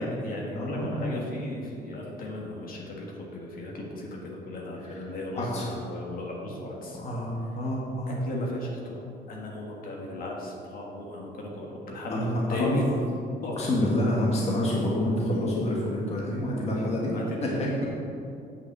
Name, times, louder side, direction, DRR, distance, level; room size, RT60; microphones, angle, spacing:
voice 1, 0.0-7.0 8.1-12.8 13.4-13.6 16.7-17.6, left 2 dB, 55° left, -1 dB, 1.7 m, -36 dB
voice 2, 0.5-1.1 4.8-5.0 5.4-5.8 6.5-6.6 6.9-8.2 12.1-12.7 13.6-17.2 17.4-17.9, left 1 dB, 35° left, -3 dB, 1.5 m, -28 dB
8.3 x 6.3 x 6.8 m, 2.5 s
cardioid pair, 150°, 18 cm